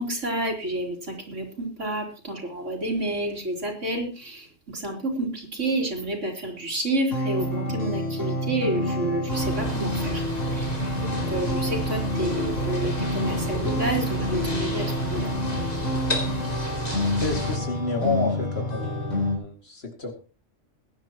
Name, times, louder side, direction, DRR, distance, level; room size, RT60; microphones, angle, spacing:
voice 1, 0.0-10.2 10.5-15.3, right 1 dB, 70° right, 1 dB, 4.0 m, -30 dB
sound 1, 7.1-19.4, equal, 75° left, 4.4 m, -28 dB
sound 2, 9.3-17.6, equal, 30° left, 3.1 m, -32 dB
voice 2, 17.0-20.1, left 2 dB, 55° left, 3 dB, 2.7 m, -30 dB
21.5 x 10.5 x 3.0 m, 0.35 s
omnidirectional pair, 1.3 m